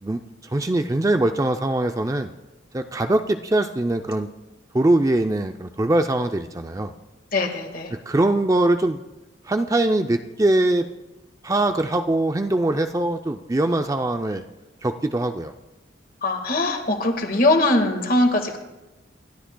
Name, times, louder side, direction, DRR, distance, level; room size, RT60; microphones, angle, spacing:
voice 1, 0.0-2.3 2.7-4.3 4.7-6.9 8.1-9.0 9.5-10.8 11.4-14.4 14.8-15.5, right 2 dB, 20° right, 7 dB, 0.4 m, -22 dB
voice 2, 7.3-7.9 16.2-18.6, left 2 dB, 50° left, 4 dB, 1.7 m, -21 dB
27.5 x 12.5 x 2.2 m, 1.0 s
head